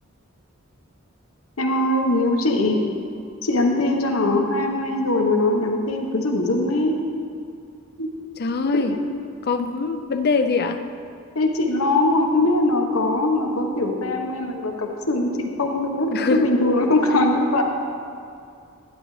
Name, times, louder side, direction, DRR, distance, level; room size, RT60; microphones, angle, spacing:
voice 1, 1.6-2.8 3.4-7.0 8.0-8.1 8.7-9.0 11.3-17.6, left 2 dB, 85° left, 2 dB, 1.1 m, -21 dB
voice 2, 8.4-8.9 9.4-10.8 16.1-16.4, left 4 dB, 50° left, 7 dB, 0.5 m, -23 dB
11.5 x 10.0 x 3.2 m, 2.4 s
head